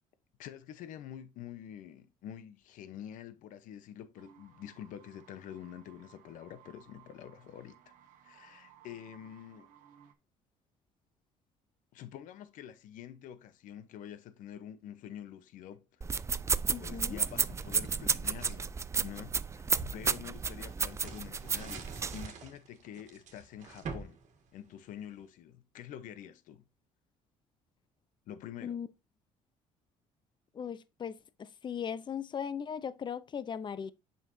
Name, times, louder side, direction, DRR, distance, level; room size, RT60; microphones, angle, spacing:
voice 1, 0.4-7.8 8.2-9.7 11.9-16.3 16.8-18.7 19.0-24.2 24.5-26.6 28.3-28.8, left 10 dB, 70° left, 0.9 m, -47 dB
sound 1, 4.1-10.1, right 10 dB, 75° right, 1.1 m, -60 dB
sound 2, 16.0-22.3, right 5 dB, 20° right, 0.3 m, -32 dB
voice 2, 16.7-17.2 28.6-28.9 30.5-33.9, left 7 dB, 35° left, 0.6 m, -38 dB
sound 3, 16.8-18.6 19.2-25.2, right 4 dB, 55° right, 1.7 m, -47 dB
7.4 x 5.8 x 2.7 m
supercardioid pair, 90°, 14 cm